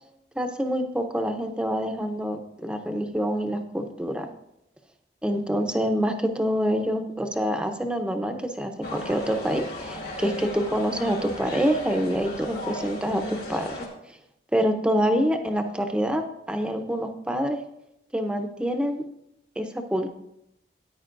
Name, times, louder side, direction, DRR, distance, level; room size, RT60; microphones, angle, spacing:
voice 1, 0.4-4.3 5.2-13.8 14.5-17.6 18.1-19.0 19.6-20.1, equal, 5° right, 6 dB, 0.7 m, -26 dB
sound 1, 8.8-13.9, left 1 dB, 60° left, 2.5 m, -36 dB
14.0 x 9.4 x 2.6 m, 0.81 s
head